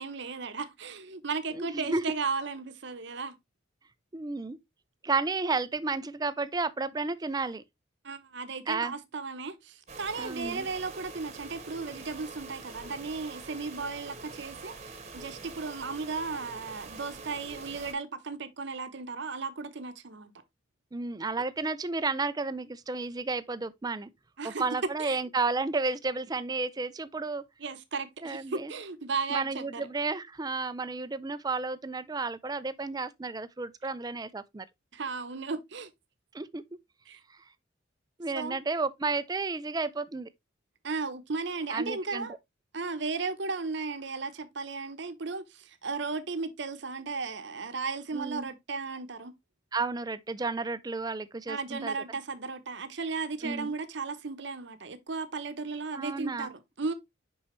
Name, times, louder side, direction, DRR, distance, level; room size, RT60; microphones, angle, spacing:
voice 1, 0.0-3.4 8.0-20.3 24.4-24.6 25.0-25.2 27.6-29.9 34.9-35.9 37.1-37.2 38.3-38.6 40.8-42.3 42.7-49.3 51.5-56.9, right 4 dB, 60° right, 0.9 m, -35 dB
voice 2, 1.5-2.0 4.1-4.6 5.0-7.6 8.7-8.9 10.2-10.7 20.9-24.1 24.4-27.4 28.2-28.7 29.3-34.6 36.3-36.6 38.2-40.3 41.7-42.3 48.1-48.5 49.7-51.9 53.4-53.7 55.9-56.5, right 3 dB, 20° right, 0.4 m, -32 dB
sound 1, 9.9-17.9, right 4 dB, 35° right, 1.1 m, -45 dB
5.9 x 5.5 x 3.0 m
head